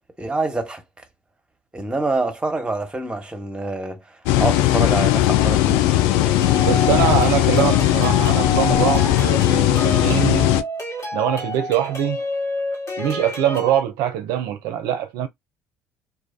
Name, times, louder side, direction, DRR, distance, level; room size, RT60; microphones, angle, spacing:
voice 1, 0.2-0.8 1.7-7.3 7.7-7.8, right 2 dB, 15° right, 1.1 m, -27 dB
sound 1, 4.3-10.6, left 14 dB, 70° left, 0.4 m, -18 dB
sound 2, 6.4-13.8, left 1 dB, 45° left, 1.5 m, -29 dB
voice 2, 6.6-10.5 11.1-12.2 13.0-15.3, right 10 dB, 70° right, 0.4 m, -23 dB
2.5 x 2.3 x 2.5 m
hypercardioid pair, 55°, 7 cm